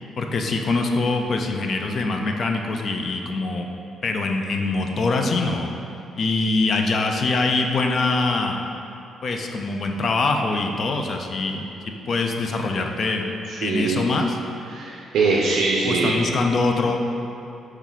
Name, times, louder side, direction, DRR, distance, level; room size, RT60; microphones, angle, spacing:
voice 1, 0.2-3.7 4.0-5.7 6.2-8.6 9.2-11.6 12.1-13.3 13.6-14.4 15.8-17.0, left 3 dB, 50° left, 3 dB, 0.4 m, -23 dB
voice 2, 13.5-14.0 14.7-16.2, right 3 dB, 80° right, -2 dB, 0.4 m, -22 dB
4.5 x 2.9 x 3.9 m, 2.8 s
cardioid pair, 90°, 0 cm